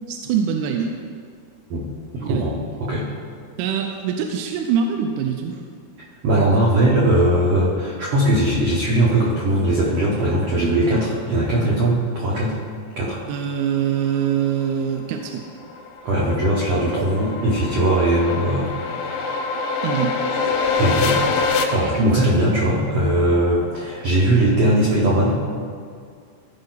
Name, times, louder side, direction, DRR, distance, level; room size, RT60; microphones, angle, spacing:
voice 1, 0.1-1.0 2.2-2.5 3.6-5.6 13.3-15.4 19.8-20.2, right 8 dB, 85° right, 3 dB, 2.6 m, -23 dB
voice 2, 2.1-3.1 6.2-12.6 13.0-13.2 16.0-19.4 20.8-25.4, right 1 dB, 70° right, -6 dB, 1.5 m, -20 dB
sound 1, 15.1-21.6, left 4 dB, 75° left, 2.4 m, -25 dB
15.0 x 5.4 x 4.0 m, 2.2 s
omnidirectional pair, 4.6 m